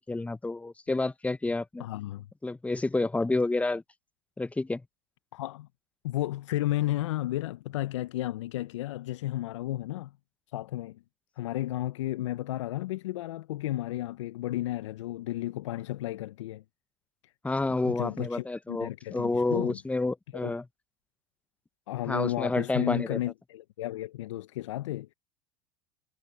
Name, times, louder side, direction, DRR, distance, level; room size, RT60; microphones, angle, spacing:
voice 1, 0.1-1.8 2.4-3.8 4.4-4.8 17.4-20.6 22.1-23.2, left 2 dB, 10° left, 0.7 m, -29 dB
voice 2, 1.8-2.3 5.3-5.7 6.0-10.1 10.5-11.0 11.4-16.6 17.2-17.3 17.8-19.8 20.3-20.5 21.9-25.1, left 15 dB, 80° left, 0.7 m, -33 dB
hypercardioid pair, 90°, 15 cm